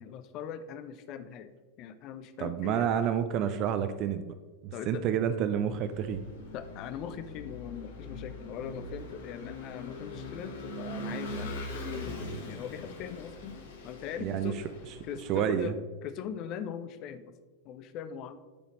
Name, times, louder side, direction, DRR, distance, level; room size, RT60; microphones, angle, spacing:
voice 1, 0.0-1.5 1.8-2.9 4.7-5.0 6.5-13.6 13.8-14.6 15.0-15.7 16.0-17.4 17.6-18.4, left 8 dB, 40° left, 11 dB, 0.5 m, -40 dB
voice 2, 2.4-4.3 4.6-6.2 14.2-14.5 15.3-15.7, right 9 dB, 40° right, 10 dB, 0.4 m, -29 dB
Vehicle / Engine, 5.6-15.4, left 1 dB, 60° left, 1.1 m, -41 dB
11.5 x 4.0 x 3.1 m, 1.3 s
figure-of-eight pair, 90°, 0 cm